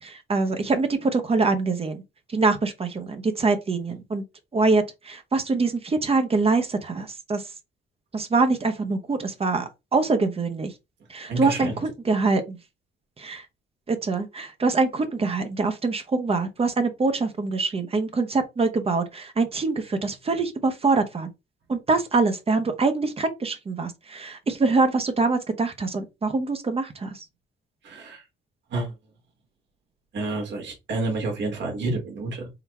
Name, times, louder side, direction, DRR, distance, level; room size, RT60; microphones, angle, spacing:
voice 1, 0.0-2.0 2.3-4.2 4.5-7.5 8.1-10.7 11.1-12.6 13.2-13.5 13.9-21.3 21.7-27.2, right 3 dB, 30° right, 0.8 m, -24 dB
voice 2, 11.3-11.8 27.8-28.2 28.7-28.9 30.1-32.5, right 2 dB, 65° right, 1.7 m, -29 dB
3.9 x 2.3 x 4.1 m
cardioid pair, 90°, 20 cm